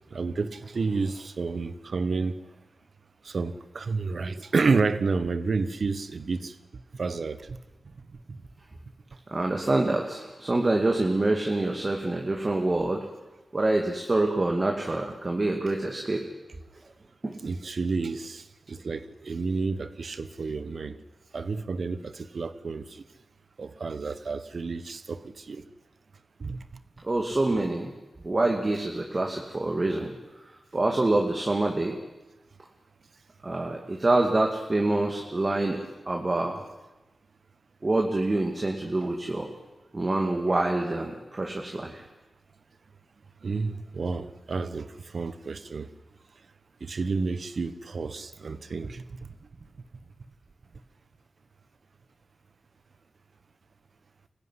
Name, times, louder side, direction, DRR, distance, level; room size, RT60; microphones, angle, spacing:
voice 1, 0.1-2.4 3.2-6.5 7.0-7.6 8.3-8.4 17.4-21.0 21.3-22.8 23.6-25.6 26.4-26.6 39.0-39.1 43.4-44.9 45.1-45.9 46.8-49.0, right 4 dB, 65° right, 13 dB, 1.2 m, -30 dB
voice 2, 9.3-13.0 13.5-16.2 17.2-17.4 27.0-27.9 28.2-30.1 30.4-32.0 33.4-35.8 36.1-36.6 37.8-39.5 39.9-42.0, right 2 dB, 40° right, 2 dB, 2.3 m, -26 dB
24.0 x 15.0 x 10.0 m, 1.1 s
cardioid pair, 55°, 0 cm